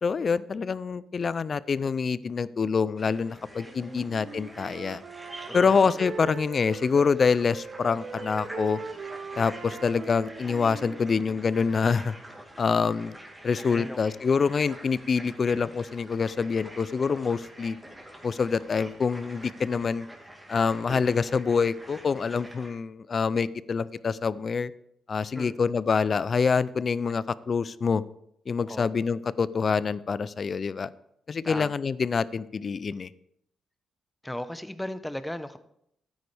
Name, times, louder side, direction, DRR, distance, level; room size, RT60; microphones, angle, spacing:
voice 1, 0.0-5.0 5.5-8.8 9.4-12.1 12.6-13.2 13.4-17.8 18.2-20.1 20.5-24.7 25.1-28.0 28.5-30.9 31.3-33.1, left 5 dB, 50° left, 18 dB, 0.4 m, -26 dB
sound 1, 3.0-22.7, right 1 dB, 15° right, 2.6 m, -46 dB
Wind instrument woodwind instrument, 3.7-7.2 7.5-11.5, right 5 dB, 60° right, 0.6 m, -40 dB
voice 2, 34.2-35.6, left 1 dB, 10° left, 12 dB, 0.9 m, -36 dB
13.0 x 9.4 x 3.4 m, 0.74 s
cardioid pair, 70°, 0 cm